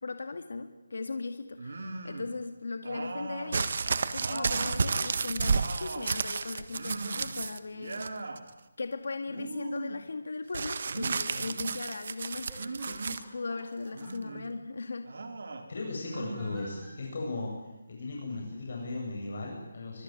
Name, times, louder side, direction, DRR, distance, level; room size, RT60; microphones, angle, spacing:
voice 1, 0.0-3.7 4.1-8.3 8.8-12.5 12.8-15.1, left 3 dB, 80° left, 7 dB, 2.2 m, -38 dB
sound 1, 1.6-2.4 2.8-4.8 5.2-6.2 6.7-7.4 7.7-8.4 9.3-10.0 10.9-11.8 12.5-13.3 13.9-14.5 15.0-15.7 16.1-17.2, right 3 dB, 70° right, 4.2 m, -40 dB
sound 2, 3.5-7.6 7.9-8.5 10.5-13.2 14.1-14.2, right 4 dB, 55° right, 1.5 m, -31 dB
sound 3, 12.5-14.1 16.1-17.0 18.1-18.4 18.8-18.9, left 1 dB, 5° left, 7.9 m, -53 dB
voice 2, 15.7-17.5 17.9-20.0, left 2 dB, 55° left, -1 dB, 7.9 m, -36 dB
25.0 x 24.5 x 9.3 m, 0.99 s
hypercardioid pair, 170°, 0 cm